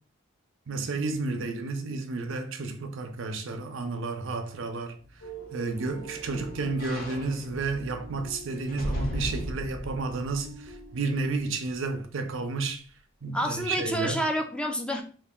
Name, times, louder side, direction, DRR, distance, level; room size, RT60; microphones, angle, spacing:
voice 1, 0.7-5.0 5.5-12.8 13.2-14.2, right 3 dB, 70° right, 0.6 m, -31 dB
sound 1, 5.1-11.4 11.8-11.9, equal, 45° left, 0.8 m, -37 dB
sound 2, 5.2-10.1 10.4-11.5, right 3 dB, 75° left, 0.7 m, -47 dB
voice 2, 13.3-15.0, equal, 5° left, 0.4 m, -29 dB
3.0 x 2.5 x 3.6 m
head